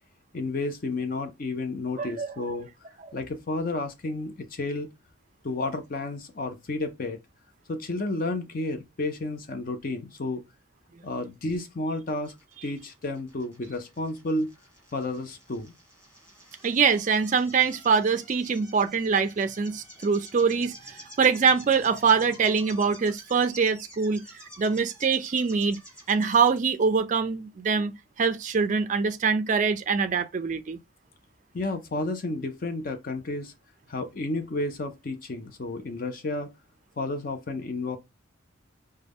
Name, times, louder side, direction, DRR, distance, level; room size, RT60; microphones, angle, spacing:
voice 1, 0.3-2.7 3.1-4.9 5.4-7.2 7.7-10.4 11.0-12.3 12.6-14.5 14.9-15.7 31.5-33.5 33.9-36.5 37.0-38.0, left 2 dB, 40° left, 0.5 m, -31 dB
voice 2, 2.0-2.3 16.6-20.7 21.2-24.2 24.6-25.8 26.1-27.9 28.2-30.8, right 5 dB, 35° right, 0.3 m, -24 dB
sound 1, 12.2-26.6, equal, 5° left, 2.2 m, -49 dB
4.9 x 2.2 x 3.4 m
head